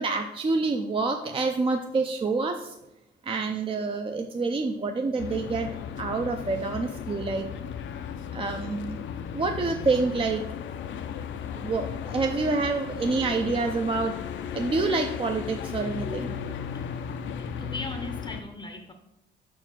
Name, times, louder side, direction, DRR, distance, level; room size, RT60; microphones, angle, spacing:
voice 1, 0.0-2.7 3.3-5.7 6.0-7.5 8.3-9.0 9.3-10.4 11.6-14.1 14.5-16.4, right 3 dB, 25° right, 5 dB, 0.5 m, -27 dB
sound 1, 5.2-18.4, left 8 dB, 70° left, 0.6 m, -35 dB
voice 2, 17.4-18.9, left 2 dB, 20° left, 5 dB, 0.7 m, -38 dB
5.3 x 4.6 x 6.1 m, 0.90 s
cardioid pair, 90°, 20 cm